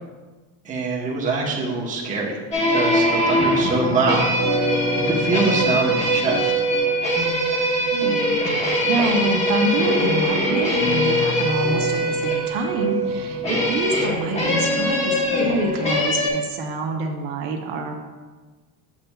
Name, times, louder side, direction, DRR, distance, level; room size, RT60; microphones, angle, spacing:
voice 1, 0.6-2.4 2.7-4.3 4.6-6.5, right 4 dB, 15° right, -4 dB, 0.9 m, -24 dB
sound 1, 2.5-16.3, equal, 15° left, 1.0 m, -22 dB
voice 2, 7.9-17.9, right 2 dB, 55° right, 3 dB, 0.8 m, -26 dB
8.3 x 7.2 x 2.3 m, 1.3 s
cardioid pair, 170°, 46 cm